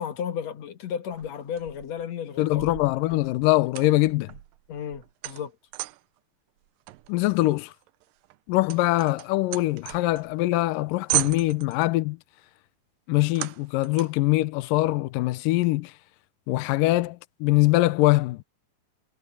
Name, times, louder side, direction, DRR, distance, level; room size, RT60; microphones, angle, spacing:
voice 1, 0.0-2.6 3.1-3.2 4.7-5.5, left 8 dB, 55° left, 2.5 m, -33 dB
sound 1, 1.1-2.0 2.5-6.2 6.9-10.4 10.7-10.8 11.1-11.9 13.4-14.3, right 18 dB, 80° right, 2.4 m, -35 dB
voice 2, 2.4-4.3 7.1-7.7 8.5-12.2 13.1-15.9 16.5-18.4, left 18 dB, 80° left, 2.3 m, -23 dB
omnidirectional pair, 4.0 m